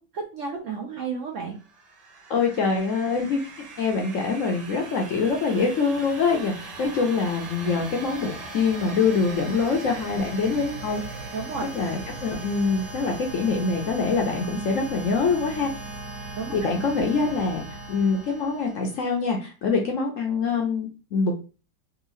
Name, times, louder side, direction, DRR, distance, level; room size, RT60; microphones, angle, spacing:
voice 1, 0.0-1.6 11.3-11.7 13.0-13.1 16.4-16.7, right 5 dB, 65° right, 1 dB, 0.8 m, -32 dB
sound 1, 1.6-19.2, right 3 dB, 80° right, 1.6 m, -39 dB
voice 2, 2.3-3.4 3.8-11.0 11.7-15.7 16.5-21.4, left 4 dB, 60° left, 1 dB, 0.9 m, -24 dB
3.6 x 2.7 x 3.0 m, 0.34 s
omnidirectional pair, 1.8 m